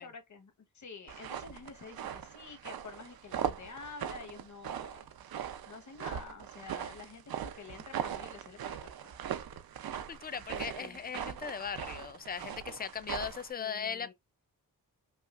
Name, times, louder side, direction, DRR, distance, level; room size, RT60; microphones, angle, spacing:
voice 1, 0.0-5.1 5.7-9.1 10.5-11.0 13.5-14.1, left 4 dB, 55° left, 1.1 m, -49 dB
sound 1, 1.1-13.5, right 9 dB, 80° right, 0.6 m, -40 dB
voice 2, 10.1-14.1, left 7 dB, 25° left, 0.4 m, -38 dB
5.5 x 2.3 x 2.4 m
wide cardioid pair, 125°, 36 cm